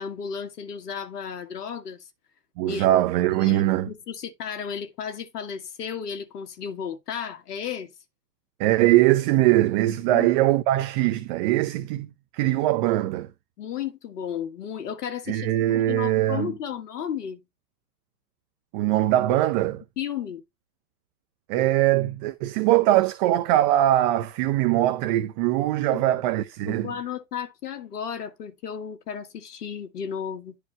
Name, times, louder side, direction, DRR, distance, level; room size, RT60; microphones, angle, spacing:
voice 1, 0.0-2.1 2.7-2.9 3.3-7.9 10.1-10.3 11.8-11.9 13.6-17.4 20.0-20.4 25.9-26.0 26.7-30.6, left 8 dB, 75° left, 1.6 m, -34 dB
voice 2, 2.6-3.9 8.6-13.3 15.3-16.5 18.7-19.8 21.5-26.9, right 14 dB, 30° right, 0.7 m, -22 dB
11.0 x 4.8 x 3.1 m
hypercardioid pair, 135°, 48 cm